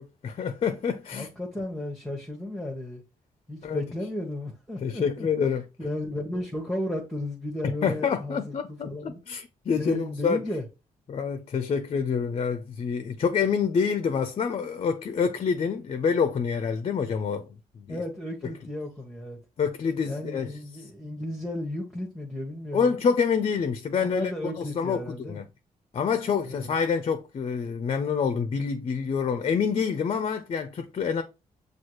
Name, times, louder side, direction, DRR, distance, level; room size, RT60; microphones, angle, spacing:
voice 1, 0.0-1.3 3.6-3.8 4.8-5.6 7.6-10.4 11.1-17.5 17.8-18.0 18.4-18.5 19.6-20.6 22.7-24.3 24.6-25.5 25.9-31.2, left 6 dB, 45° left, 0.4 m, -27 dB
voice 2, 1.1-3.0 3.5-5.3 5.8-9.2 9.8-10.6 17.9-19.4 20.0-22.9 24.0-25.4 26.4-26.7, left 1 dB, 5° left, 1.0 m, -34 dB
6.2 x 2.3 x 3.0 m
cardioid pair, 70°, 15 cm